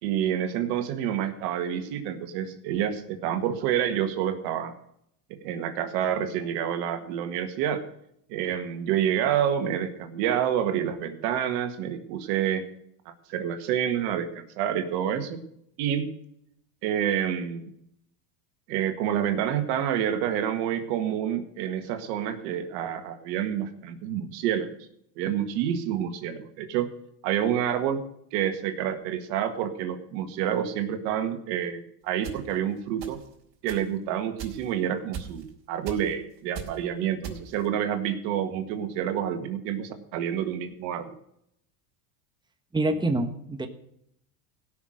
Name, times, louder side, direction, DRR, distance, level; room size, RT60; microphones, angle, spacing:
voice 1, 0.0-4.7 5.3-7.8 8.3-12.7 13.1-15.4 15.8-16.1 16.8-17.7 18.7-24.7 25.2-26.9 27.2-33.2 33.6-41.1, right 9 dB, 70° right, 8 dB, 1.9 m, -28 dB
sound 1, 32.2-32.4 33.0-33.3 33.7-33.9 34.4-34.7 35.1-35.5 35.9-36.1 36.6-36.8 37.2-37.7, right 8 dB, 50° right, 4.2 m, -38 dB
voice 2, 42.7-43.7, right 2 dB, 10° right, 6 dB, 1.4 m, -26 dB
17.0 x 6.3 x 6.4 m, 0.73 s
supercardioid pair, 105°, 50 cm